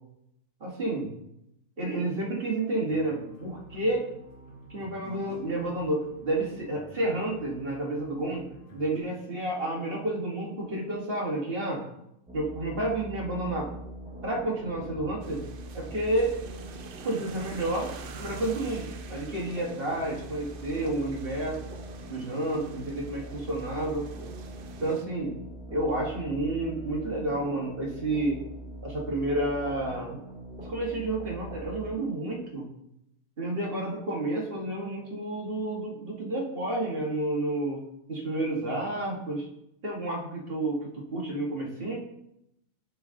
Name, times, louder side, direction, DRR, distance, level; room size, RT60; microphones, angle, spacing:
voice 1, 0.6-1.1 1.8-4.1 4.7-8.5 8.7-11.8 12.3-13.7 14.2-15.4 15.7-16.4 17.0-17.9 18.2-18.8 19.1-21.6 22.1-24.1 24.8-25.3 25.7-28.4 28.8-30.2 30.7-32.7 33.4-37.8 38.1-39.5 39.8-42.0, right 1 dB, 40° right, -2 dB, 1.8 m, -30 dB
sound 1, 2.9-9.0, equal, 40° left, 1.6 m, -48 dB
sound 2, 12.3-31.9, right 1 dB, 10° right, 0.4 m, -42 dB
sound 3, 15.2-25.0, right 6 dB, 60° right, 0.6 m, -47 dB
11.5 x 4.0 x 3.7 m, 0.82 s
omnidirectional pair, 1.5 m